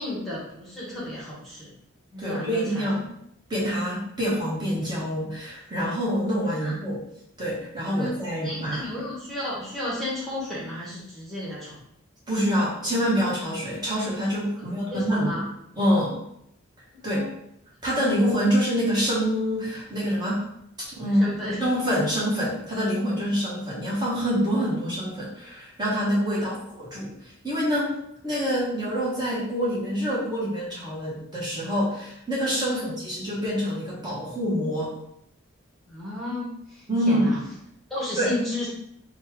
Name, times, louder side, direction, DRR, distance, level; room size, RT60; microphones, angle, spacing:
voice 1, 0.0-1.7 2.1-2.9 6.6-6.7 7.9-11.8 14.6-15.4 16.9-17.3 21.0-21.6 26.2-26.6 32.6-32.9 35.9-37.4 37.9-38.7, left 1 dB, ahead, -8 dB, 1.2 m, -33 dB
voice 2, 2.2-3.0 3.5-7.0 7.4-8.9 12.3-15.4 15.8-16.2 17.0-17.2 17.8-20.4 20.9-21.2 21.6-27.9 28.2-34.9 36.9-37.4 38.2-38.3, equal, 20° right, -7 dB, 1.4 m, -26 dB
4.2 x 2.4 x 4.7 m, 0.74 s
head